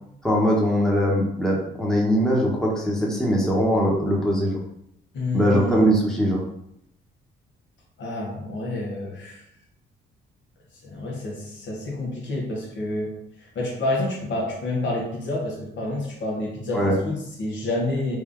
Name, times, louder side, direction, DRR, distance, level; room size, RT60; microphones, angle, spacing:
voice 1, 0.2-4.6 5.3-6.4 16.7-16.9, equal, 5° left, -3 dB, 1.0 m, -21 dB
voice 2, 5.1-5.9 8.0-9.4 10.8-18.2, left 1 dB, 65° left, -2 dB, 1.3 m, -29 dB
3.5 x 2.7 x 3.6 m, 0.76 s
cardioid pair, 90°, 20 cm